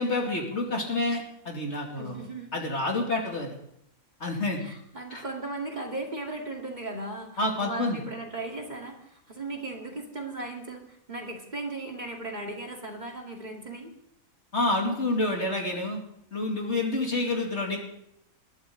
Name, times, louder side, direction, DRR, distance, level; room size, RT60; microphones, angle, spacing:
voice 1, 0.0-2.2 2.5-3.5 4.2-4.6 5.1-5.2 7.4-8.0 14.5-16.0 16.3-17.8, left 2 dB, 55° left, 0 dB, 2.9 m, -28 dB
voice 2, 2.0-2.5 4.6-13.9, right 2 dB, 30° right, 1 dB, 2.5 m, -37 dB
20.5 x 12.0 x 3.9 m, 0.76 s
omnidirectional pair, 1.4 m